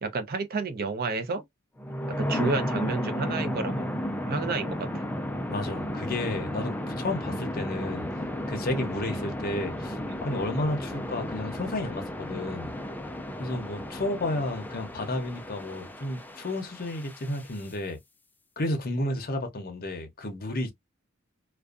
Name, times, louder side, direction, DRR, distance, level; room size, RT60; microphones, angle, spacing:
voice 1, 0.0-1.4 2.1-3.9 4.3-5.0, right 4 dB, 45° right, 0.6 m, -30 dB
sound 1, 1.8-17.7, left 1 dB, 10° left, 0.3 m, -33 dB
voice 2, 5.5-8.1 8.5-12.7 13.4-18.0 18.6-20.7, left 1 dB, 45° left, 0.7 m, -32 dB
2.5 x 2.3 x 2.4 m
head